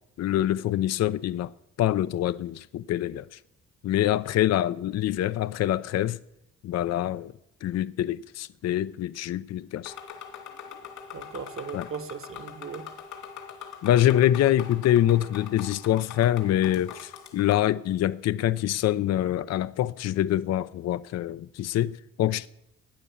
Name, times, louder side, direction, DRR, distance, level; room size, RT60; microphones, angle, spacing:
voice 1, 0.2-1.5 1.8-3.2 3.8-6.2 6.6-7.3 7.6-9.9 11.7-11.9 13.8-22.5, left 12 dB, 60° left, 0.5 m, -25 dB
sound 1, 9.8-17.7, left 7 dB, 75° left, 2.7 m, -43 dB
voice 2, 11.1-12.9, right 6 dB, 45° right, 1.2 m, -38 dB
15.5 x 9.5 x 7.0 m
cardioid pair, 90°, 30 cm